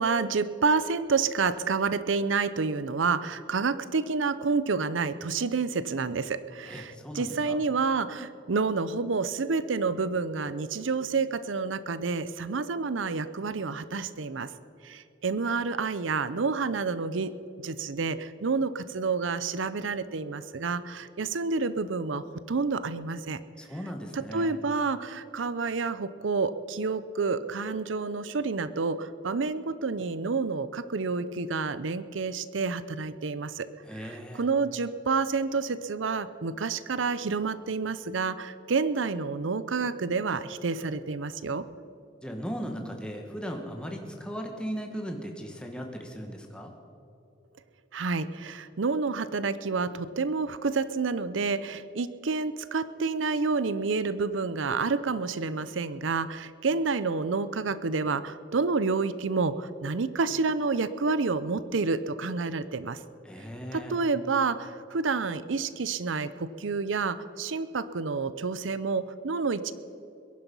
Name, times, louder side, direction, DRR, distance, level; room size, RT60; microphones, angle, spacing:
voice 1, 0.0-14.5 14.8-17.3 17.6-23.4 24.1-33.7 33.9-41.6 47.9-63.0 63.7-69.7, right 4 dB, 90° right, 14 dB, 0.6 m, -29 dB
voice 2, 6.7-7.6 23.6-24.6 33.8-34.4 42.2-46.7 63.2-64.0, equal, 5° left, 2 dB, 1.5 m, -37 dB
22.0 x 11.0 x 5.5 m, 2.7 s
head